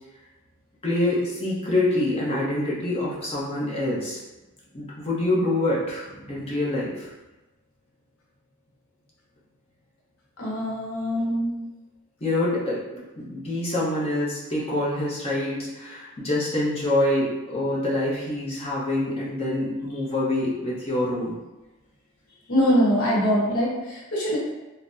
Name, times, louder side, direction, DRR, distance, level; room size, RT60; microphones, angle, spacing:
voice 1, 0.8-4.2 4.7-7.1 12.2-12.8 13.2-21.3, left 1 dB, 25° left, -6 dB, 0.8 m, -26 dB
voice 2, 10.4-11.6 22.5-24.4, equal, 75° left, -5 dB, 1.0 m, -23 dB
3.9 x 2.1 x 2.5 m, 1.1 s
head